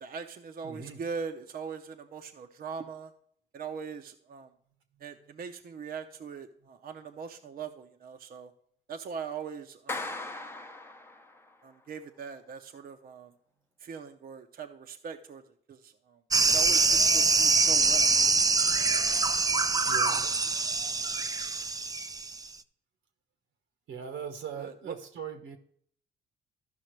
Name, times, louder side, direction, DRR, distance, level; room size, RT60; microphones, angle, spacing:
voice 1, 0.0-3.1 3.5-4.5 5.0-8.5 8.9-10.1 11.6-13.3 13.8-15.4 15.7-16.2 16.5-18.2 24.1-24.2 24.6-24.9, right 6 dB, 50° right, 6 dB, 0.7 m, -41 dB
voice 2, 0.6-1.0 19.9-20.5 23.9-25.6, right 7 dB, 85° right, 6 dB, 1.2 m, -40 dB
Clapping, 9.9-11.5, left 2 dB, 10° left, 0.7 m, -38 dB
sound 1, 16.3-22.5, right 4 dB, 20° right, 0.4 m, -24 dB
13.0 x 5.6 x 3.1 m, 0.64 s
cardioid pair, 90°, 20 cm